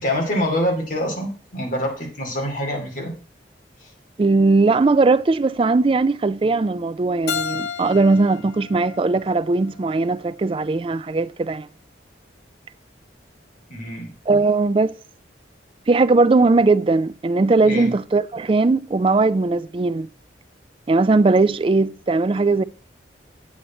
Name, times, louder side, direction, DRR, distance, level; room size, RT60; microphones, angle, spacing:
voice 1, 0.0-3.1 13.7-14.1 17.6-17.9, equal, 45° left, 2.8 m, -25 dB
voice 2, 4.2-11.7 14.3-15.0 15.9-20.1 20.9-22.6, right 3 dB, 30° right, 0.3 m, -19 dB
Keyboard (musical), 7.3-10.1, left 7 dB, 70° left, 1.0 m, -32 dB
8.6 x 8.4 x 4.3 m
head